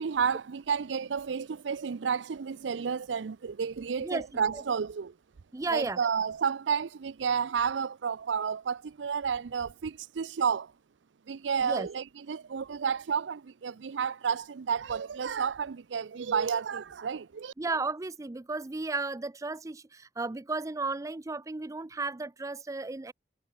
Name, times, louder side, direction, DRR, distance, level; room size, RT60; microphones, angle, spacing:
voice 1, 0.0-5.2 5.7-10.7 11.3-17.5, right 6 dB, 85° right, 0.5 m, -31 dB
voice 2, 4.0-4.6 5.5-6.0 11.6-11.9 17.6-23.1, right 3 dB, 20° right, 0.4 m, -34 dB
head